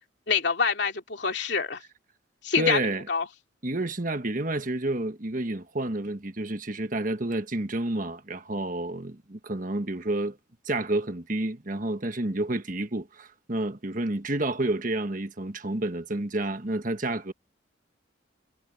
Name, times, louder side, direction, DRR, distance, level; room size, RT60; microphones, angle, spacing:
voice 1, 0.3-1.8 2.4-2.8 3.1-3.2, left 5 dB, 60° left, 3.0 m, -25 dB
voice 2, 2.6-3.1 3.6-10.4 10.6-17.3, right 2 dB, 40° right, 1.4 m, -29 dB
head